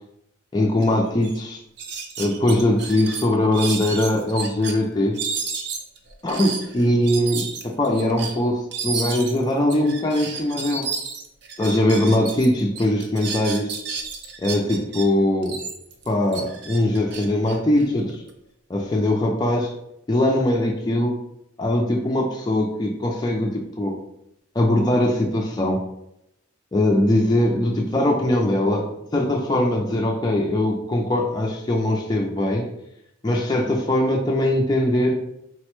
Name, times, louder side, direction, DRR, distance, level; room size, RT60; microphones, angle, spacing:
voice 1, 0.5-1.6 2.2-5.3 6.2-10.9 11.6-13.7 14.4-15.6 16.1-18.2 18.7-19.7 20.1-21.1 21.6-24.0 24.6-25.8 26.7-32.7 33.2-35.1, left 1 dB, 20° left, -1 dB, 0.3 m, -21 dB
sound 1, 0.8-0.9 1.2-1.4 1.8-4.7 5.1-12.5 12.7-15.0 15.4-18.3, right 5 dB, 55° right, 0.4 m, -32 dB
3.9 x 2.1 x 3.0 m, 0.80 s
head